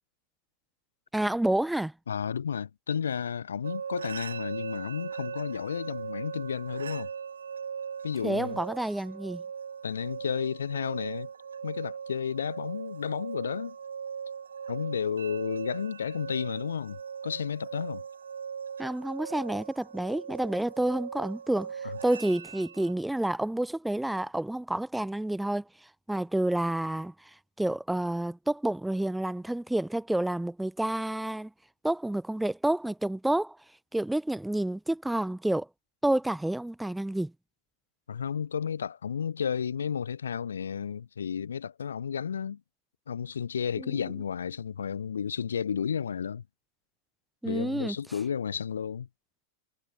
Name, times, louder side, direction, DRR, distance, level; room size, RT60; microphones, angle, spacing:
voice 1, 1.1-1.9 8.2-9.4 18.8-21.7 22.0-25.6 26.1-27.1 27.6-31.5 31.8-33.6 33.9-35.7 36.0-37.3 43.8-44.0 47.4-48.0, right 1 dB, 5° right, 0.9 m, -29 dB
voice 2, 2.1-7.1 8.0-8.6 9.8-11.3 11.6-13.8 14.7-18.0 21.8-22.0 38.1-42.6 43.1-46.4 47.4-49.1, left 7 dB, 70° left, 1.0 m, -32 dB
sound 1, 3.6-22.9, right 7 dB, 70° right, 1.0 m, -39 dB
figure-of-eight pair, 90°, 0 cm